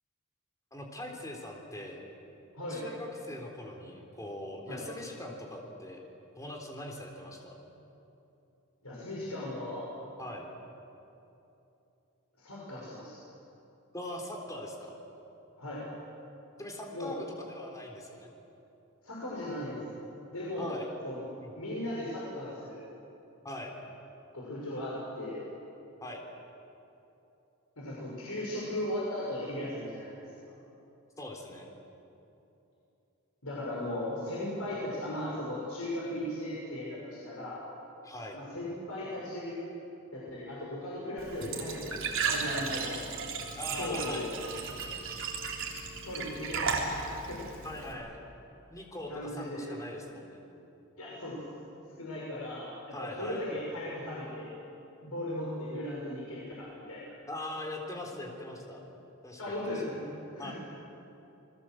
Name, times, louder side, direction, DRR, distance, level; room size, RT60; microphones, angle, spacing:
voice 1, 0.7-2.0 2.7-6.0 6.4-7.6 10.2-10.5 13.9-15.0 16.6-18.3 20.6-20.9 21.4-21.5 23.4-23.7 26.0-26.2 31.2-31.7 38.0-38.4 43.5-44.3 47.6-48.2 48.7-50.4 52.9-53.5 57.3-58.8 59.2-59.8 60.4-60.5, left 1 dB, 15° left, 1 dB, 3.8 m, -41 dB
voice 2, 8.8-9.9 12.4-13.2 15.6-15.9 16.9-17.2 19.0-20.7 21.0-21.2 21.5-22.8 24.3-25.4 27.8-30.3 33.4-37.6 38.3-39.6 40.1-43.0 43.8-44.3 46.0-47.7 49.1-49.7 51.0-51.7 52.0-54.5 55.0-57.1 59.4-60.5, left 1 dB, 85° left, -6 dB, 6.3 m, -37 dB
Glass / Trickle dribble / Fill (with liquid), 41.2-47.9, right 5 dB, 65° right, 3.7 m, -35 dB
28.5 x 21.0 x 7.8 m, 2.9 s
head